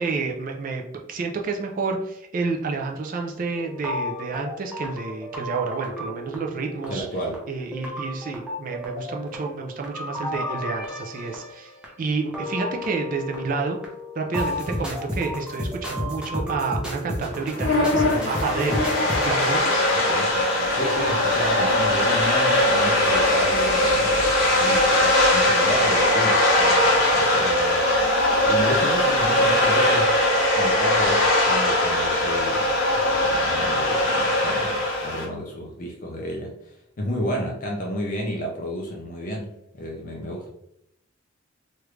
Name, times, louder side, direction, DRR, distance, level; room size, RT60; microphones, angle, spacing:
voice 1, 0.0-7.1 7.5-11.7 12.0-13.8 14.2-19.9, right 4 dB, 40° right, 2 dB, 0.3 m, -29 dB
sound 1, 3.5-19.3, left 1 dB, 5° right, 0.6 m, -33 dB
voice 2, 6.9-7.4 20.1-20.3 20.7-40.5, equal, 40° left, -1 dB, 0.4 m, -32 dB
sound 2, 17.3-35.3, left 1 dB, 80° left, 0.9 m, -20 dB
3.2 x 2.4 x 3.1 m, 0.79 s
head